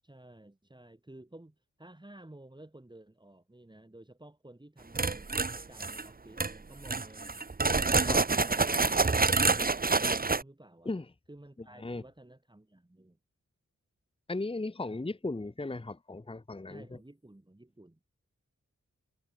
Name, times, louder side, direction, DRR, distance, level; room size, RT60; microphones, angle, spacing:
voice 1, 0.0-7.4 8.2-11.0 11.3-13.2 16.7-18.0, right 1 dB, 15° right, 3.5 m, -53 dB
sound 1, 4.9-6.1 6.4-6.5 6.9-10.4, right 3 dB, 30° right, 1.0 m, -27 dB
voice 2, 14.3-16.8, left 2 dB, 20° left, 1.0 m, -36 dB
wide cardioid pair, 95°, 29 cm